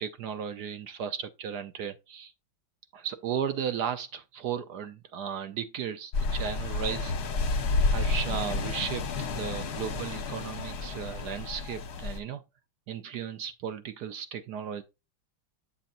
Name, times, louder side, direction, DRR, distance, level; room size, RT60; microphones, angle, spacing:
voice 1, 0.0-2.3 2.9-7.1 7.9-9.0 9.4-12.4 12.9-14.8, right 8 dB, 65° right, 1.2 m, -35 dB
sound 1, 6.1-12.2, left 3 dB, 55° left, 1.5 m, -30 dB
8.8 x 7.0 x 2.5 m
omnidirectional pair, 2.1 m